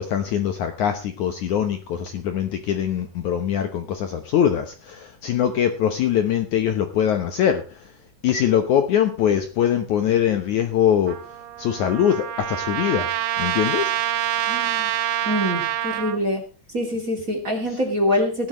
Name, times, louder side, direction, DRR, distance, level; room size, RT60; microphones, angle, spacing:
voice 1, 0.0-7.8 8.2-11.2 11.6-13.1 13.4-13.9, left 9 dB, 65° left, 7 dB, 2.1 m, -22 dB
Trumpet, 11.1-16.2, right 12 dB, 80° right, 2.8 m, -26 dB
voice 2, 14.5-14.9 15.3-16.4 16.7-18.5, left 1 dB, 25° right, 4 dB, 2.5 m, -24 dB
17.5 x 12.5 x 3.1 m, 0.34 s
omnidirectional pair, 4.4 m